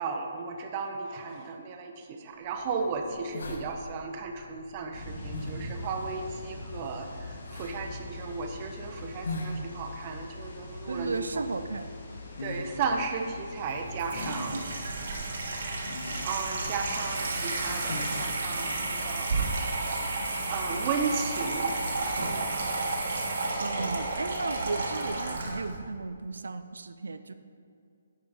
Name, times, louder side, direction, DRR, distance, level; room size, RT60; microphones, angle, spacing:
voice 1, 0.0-11.4 12.4-14.6 15.6-15.9 16.2-19.5 20.1-21.7, right 4 dB, 30° right, 4 dB, 0.7 m, -35 dB
sound 1, 2.4-19.1, left 2 dB, 80° left, 1.1 m, -43 dB
sound 2, 4.9-22.1, left 2 dB, 55° left, 1.9 m, -43 dB
voice 2, 10.9-12.0 14.3-14.7 23.6-27.3, right 3 dB, 90° right, 10 dB, 0.4 m, -35 dB
Water tap faucet / Sink (filling or washing), 13.6-25.8, right 3 dB, 65° right, 1.6 m, -32 dB
9.3 x 4.6 x 5.0 m, 2.4 s
hypercardioid pair, 165°, 0 cm